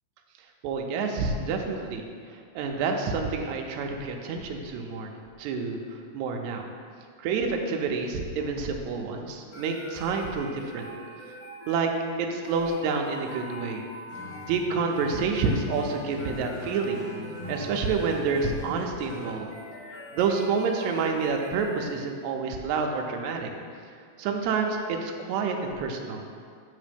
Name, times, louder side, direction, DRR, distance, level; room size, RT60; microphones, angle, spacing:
voice 1, 0.6-2.1 2.6-6.7 7.2-10.9 11.7-11.9 12.2-13.9 14.5-17.0 17.5-19.5 20.1-23.5 24.2-26.2, right 4 dB, 80° right, 2 dB, 1.8 m, -28 dB
sound 1, 9.5-22.3, equal, 80° left, 2.7 m, -44 dB
Acoustic guitar, 14.1-19.5, left 1 dB, 60° left, 3.0 m, -41 dB
7.4 x 3.4 x 5.1 m, 2.2 s
omnidirectional pair, 3.5 m